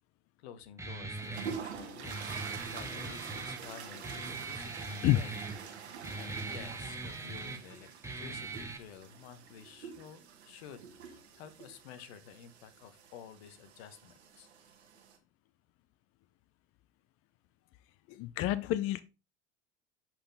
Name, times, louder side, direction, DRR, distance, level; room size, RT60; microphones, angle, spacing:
voice 1, 0.4-5.4 6.2-7.9 8.2-14.5, left 8 dB, 70° left, 12 dB, 1.1 m, -51 dB
Guitar, 0.8-8.8, right 3 dB, 10° right, 1.2 m, -41 dB
sound 1, 1.2-15.2, right 7 dB, 85° right, 1.1 m, -47 dB
voice 2, 18.1-19.0, left 14 dB, 45° left, 15 dB, 0.5 m, -28 dB
7.6 x 4.5 x 3.4 m, 0.29 s
hypercardioid pair, 75°, 32 cm